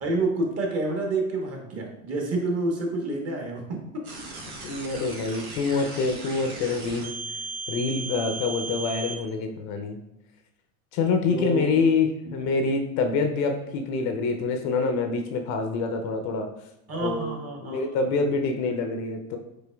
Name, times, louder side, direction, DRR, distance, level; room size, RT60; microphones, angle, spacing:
voice 1, 0.0-3.8 11.3-11.8 16.9-18.0, right 2 dB, 35° right, 1 dB, 1.2 m, -28 dB
sound 1, 4.0-9.1, right 3 dB, 85° right, 1.1 m, -36 dB
voice 2, 4.6-7.2 7.7-10.0 10.9-16.5 17.0-17.4 17.6-19.4, left 4 dB, 45° left, 5 dB, 0.6 m, -26 dB
5.0 x 4.2 x 2.3 m, 0.88 s
hypercardioid pair, 100°, 42 cm